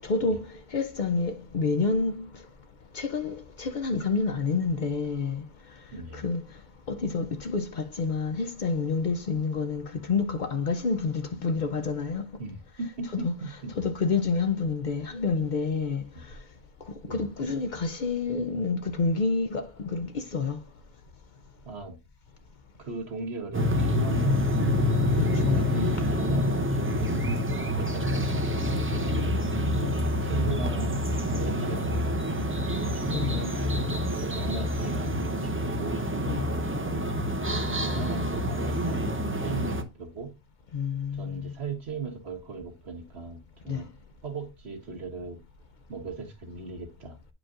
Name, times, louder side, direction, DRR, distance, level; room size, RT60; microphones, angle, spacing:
voice 1, 0.0-2.4 2.9-5.4 6.1-6.4 6.9-12.3 13.1-13.3 13.8-16.0 17.1-20.6 25.3-25.9 29.8-30.0 33.1-33.8 36.2-36.4 40.7-41.5 43.7-43.8, left 4 dB, 55° left, 0.7 m, -28 dB
voice 2, 5.9-6.2 12.4-13.8 16.1-16.3 17.0-17.3 21.6-22.0 22.8-24.7 25.2-29.6 30.2-31.0 31.3-32.5 32.9-33.6 34.2-36.0 36.8-37.2 37.7-40.3 41.1-43.9 44.2-45.4 45.9-47.2, right 4 dB, 75° right, 1.6 m, -39 dB
sound 1, 23.5-39.8, left 1 dB, 15° right, 0.4 m, -27 dB
8.8 x 4.9 x 2.4 m
omnidirectional pair, 1.1 m